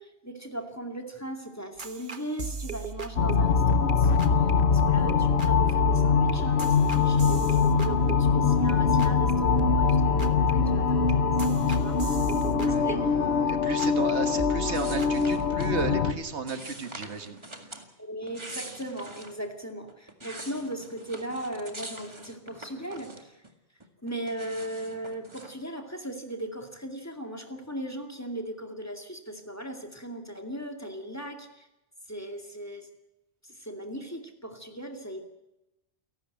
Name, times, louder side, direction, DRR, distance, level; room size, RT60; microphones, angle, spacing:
voice 1, 0.0-12.2 12.5-13.1 18.0-23.4 24.0-31.7 32.1-32.9 33.4-35.2, right 1 dB, 15° left, 4 dB, 2.3 m, -38 dB
sound 1, 1.8-3.9 4.2-4.5 4.8-8.7 9.0-9.3 9.6-13.5 13.8-14.1 14.4-15.9, right 5 dB, 50° right, 1.4 m, -38 dB
sound 2, 3.2-16.1, left 5 dB, 70° left, 1.4 m, -23 dB
voice 2, 12.5-17.4, right 4 dB, 80° right, 8 dB, 1.9 m, -34 dB
sound 3, 14.7-15.8 16.5-17.9 18.2-19.4 19.9-23.5 23.8-25.5, right 2 dB, 25° right, 2.0 m, -44 dB
28.0 x 12.0 x 9.0 m, 0.96 s
omnidirectional pair, 1.1 m